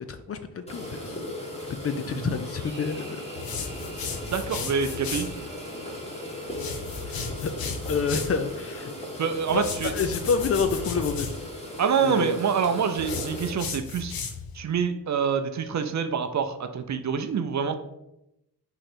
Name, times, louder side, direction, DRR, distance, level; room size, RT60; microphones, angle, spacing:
voice 1, 0.1-1.2 1.8-3.2 7.0-7.5 7.9-8.9 9.5-11.4 12.0-12.4, left 5 dB, 40° left, 9 dB, 0.4 m, -28 dB
sound 1, 0.7-13.5, left 1 dB, 15° left, 1.7 m, -37 dB
sound 2, 2.4-7.5, right 2 dB, 25° right, 1.1 m, -48 dB
sound 3, 3.4-5.3 6.5-8.4 9.5-11.4 13.0-14.6, left 5 dB, 65° left, 0.7 m, -35 dB
voice 2, 4.3-5.3 9.2-9.9 11.8-14.1 14.5-17.8, right 6 dB, 45° right, 8 dB, 0.5 m, -26 dB
3.8 x 3.1 x 4.4 m, 0.86 s
cardioid pair, 80°, 39 cm